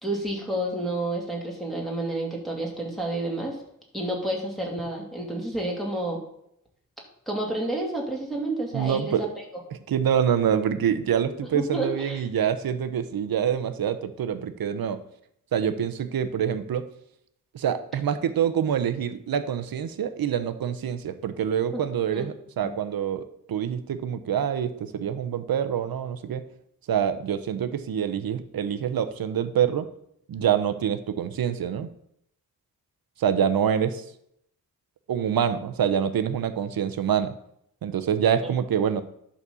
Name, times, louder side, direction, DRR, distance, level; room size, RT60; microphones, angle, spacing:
voice 1, 0.0-3.6 3.9-6.2 7.3-9.2 11.5-12.2 21.7-21.8 22.1-22.3 38.4-38.5, right 1 dB, ahead, -3 dB, 2.6 m, -30 dB
voice 2, 8.7-9.2 9.9-15.0 15.5-16.8 17.5-26.4 26.9-29.8 30.3-31.9 33.2-34.0 35.1-37.3 37.8-39.0, right 8 dB, 85° right, 10 dB, 0.9 m, -26 dB
11.0 x 4.2 x 6.9 m, 0.73 s
wide cardioid pair, 130°, 35 cm